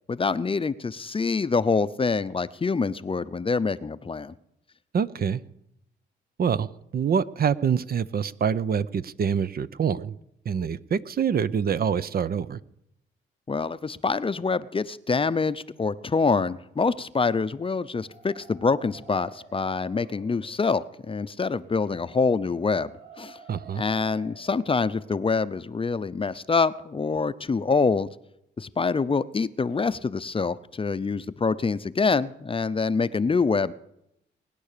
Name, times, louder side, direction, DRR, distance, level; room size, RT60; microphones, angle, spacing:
voice 1, 0.1-4.3 13.5-22.9 23.2-23.4 23.8-28.1 28.6-33.7, left 4 dB, 25° left, 14 dB, 0.6 m, -25 dB
voice 2, 4.9-5.4 6.4-10.2 10.5-12.6 23.5-23.8, right 7 dB, 50° right, 16 dB, 0.7 m, -26 dB
sound 1, 17.7-27.6, right 5 dB, 85° right, 4.6 m, -52 dB
19.5 x 9.9 x 6.7 m, 0.81 s
cardioid pair, 80°, 20 cm